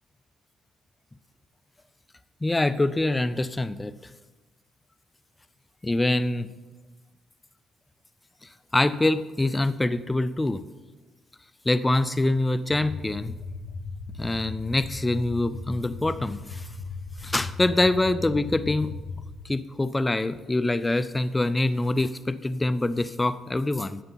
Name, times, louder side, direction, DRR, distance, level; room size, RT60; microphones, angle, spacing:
voice 1, 2.4-4.0 5.8-6.5 8.4-10.6 11.7-13.3 14.2-16.7 17.2-18.9 19.4-24.0, left 2 dB, 15° left, 13 dB, 0.4 m, -25 dB
sound 1, 12.7-19.4, left 3 dB, 80° left, 1.1 m, -37 dB
12.5 x 8.0 x 4.0 m, 1.2 s
cardioid pair, 95°, 0 cm